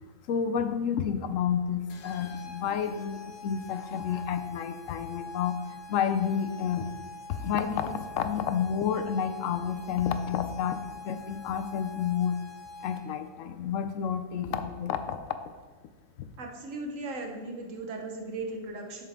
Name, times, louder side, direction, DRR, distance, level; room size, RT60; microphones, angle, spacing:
voice 1, 0.3-6.9 7.3-12.4 12.8-15.2 16.2-16.3, left 8 dB, 75° left, 10 dB, 0.9 m, -30 dB
sound 1, 1.9-13.3, left 3 dB, 55° left, 0.4 m, -45 dB
voice 2, 16.4-19.0, right 2 dB, 75° right, 2 dB, 1.4 m, -37 dB
6.9 x 6.6 x 3.5 m, 1.4 s
omnidirectional pair, 1.4 m